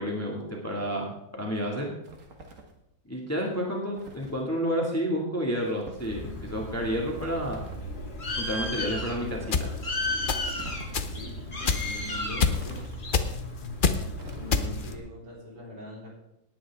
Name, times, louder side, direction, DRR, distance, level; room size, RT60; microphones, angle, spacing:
voice 1, 0.0-1.9 3.1-7.7 8.4-9.8, equal, 10° left, -1 dB, 2.0 m, -30 dB
sound 1, 2.0-2.8 4.0-4.4 5.6-6.2 7.1-7.9 9.1-9.7 10.6-11.3 12.5-13.2 14.1-14.9, right 2 dB, 45° right, 1.8 m, -46 dB
Bird, 6.0-15.0, left 2 dB, 25° left, 1.8 m, -35 dB
sound 2, 9.5-9.6 10.3-10.6 10.9-11.1 11.7-12.0 12.4-12.8 13.1-13.4 13.8-14.0 14.5-14.9, left 5 dB, 65° left, 0.5 m, -25 dB
voice 2, 11.1-12.8 14.3-16.1, left 1 dB, 60° right, -3 dB, 4.5 m, -43 dB
18.0 x 9.4 x 3.6 m, 0.84 s
omnidirectional pair, 2.0 m